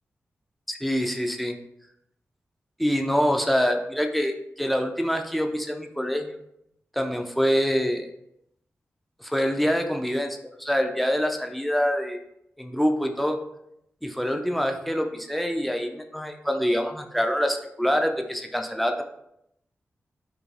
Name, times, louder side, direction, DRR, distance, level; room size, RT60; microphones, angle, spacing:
voice 1, 0.7-1.6 2.8-6.4 6.9-8.1 9.2-12.2 12.6-13.4 14.0-19.0, equal, ahead, 4 dB, 0.4 m, -25 dB
2.4 x 2.1 x 3.2 m, 0.79 s
cardioid pair, 45°, 5 cm